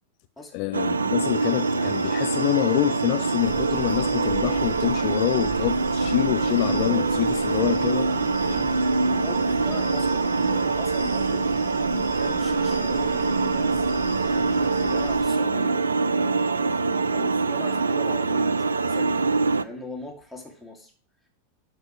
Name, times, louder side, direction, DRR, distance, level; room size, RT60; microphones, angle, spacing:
voice 1, 0.5-8.1 8.5-8.7, left 19 dB, 45° left, 0.3 m, -26 dB
sound 1, 0.7-19.6, right 3 dB, 75° right, 0.4 m, -24 dB
sound 2, 1.2-15.2, left 1 dB, 85° left, 4.7 m, -44 dB
sound 3, 3.4-15.2, right 4 dB, 15° right, 5.2 m, -39 dB
voice 2, 7.6-11.5 12.2-15.8 17.1-19.2 19.6-20.9, left 1 dB, 5° left, 2.7 m, -40 dB
11.5 x 5.5 x 4.7 m
figure-of-eight pair, 90°, 0 cm